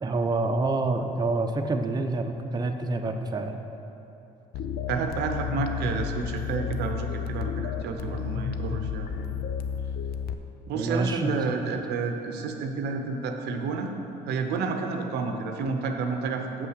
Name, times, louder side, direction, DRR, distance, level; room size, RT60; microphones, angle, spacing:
voice 1, 0.0-3.6 10.7-11.3, right 2 dB, 25° right, 4 dB, 0.7 m, -27 dB
sound 1, 4.5-10.3, left 7 dB, 65° left, 0.5 m, -32 dB
voice 2, 4.9-9.1 10.7-13.9 14.3-16.7, right 4 dB, 75° right, 4 dB, 0.7 m, -30 dB
6.9 x 5.6 x 6.5 m, 3.0 s
supercardioid pair, 70°, 17 cm